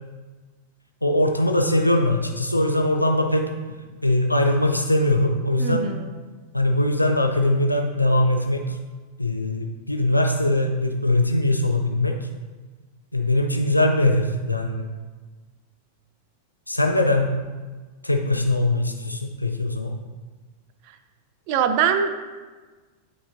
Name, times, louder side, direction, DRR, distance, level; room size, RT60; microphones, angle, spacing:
voice 1, 1.0-3.5 4.0-5.9 6.5-8.8 9.2-12.2 13.1-14.9 16.7-17.3 18.0-20.0, left 1 dB, 85° left, 3 dB, 0.6 m, -21 dB
voice 2, 5.6-6.1 21.5-22.2, right 7 dB, 45° right, 9 dB, 0.6 m, -22 dB
11.0 x 4.2 x 2.5 m, 1.3 s
figure-of-eight pair, 90°, 0 cm